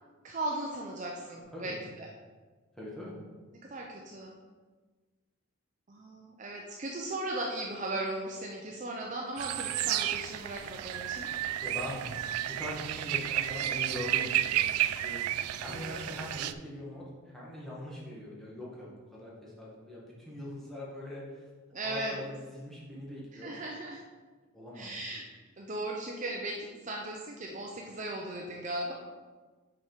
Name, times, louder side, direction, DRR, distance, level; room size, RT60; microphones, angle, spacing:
voice 1, 0.2-2.1 3.6-4.3 5.9-11.3 15.7-16.4 21.7-22.2 23.3-24.0 24.7-25.2 25.6-28.9, right 1 dB, 35° right, 0 dB, 0.5 m, -37 dB
voice 2, 2.8-3.1 11.6-12.0 12.3-15.2 15.6-21.5 21.8-23.6 24.5-24.9, left 1 dB, ahead, -6 dB, 1.5 m, -42 dB
sound 1, 9.4-16.5, right 12 dB, 90° right, 0.3 m, -32 dB
5.9 x 5.0 x 4.4 m, 1.4 s
head